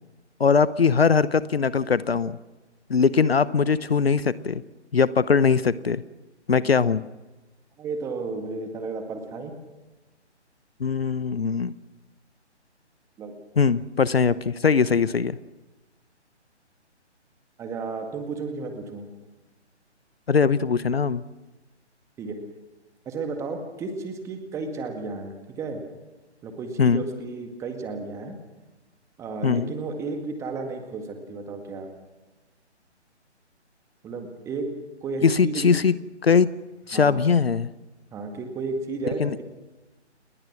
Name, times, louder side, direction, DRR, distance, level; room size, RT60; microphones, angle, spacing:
voice 1, 0.4-2.3 2.9-4.6 4.9-6.0 6.5-7.0 10.8-11.7 13.6-15.4 20.3-21.2 26.8-27.0 29.4-29.7 35.2-35.9 36.2-36.5 36.9-37.7 39.2-39.4, left 5 dB, 60° left, 17 dB, 0.9 m, -21 dB
voice 2, 7.8-9.5 13.2-13.3 17.6-19.1 22.2-22.4 23.1-25.8 26.4-28.4 29.2-31.9 34.0-34.7 35.0-35.7 36.9-37.2 38.1-39.4, right 4 dB, 10° right, 5 dB, 1.9 m, -33 dB
29.5 x 21.0 x 6.0 m, 1.1 s
figure-of-eight pair, 145°, 35 cm